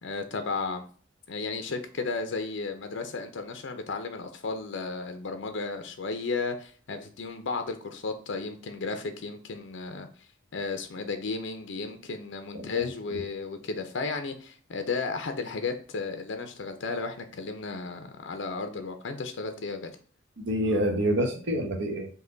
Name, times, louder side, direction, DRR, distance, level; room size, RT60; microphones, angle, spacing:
voice 1, 0.0-0.9 1.3-10.1 10.5-20.0, left 4 dB, 65° left, 7 dB, 0.6 m, -34 dB
voice 2, 12.5-12.9 20.4-22.1, equal, 65° right, 4 dB, 1.0 m, -27 dB
5.5 x 2.2 x 3.8 m, 0.44 s
head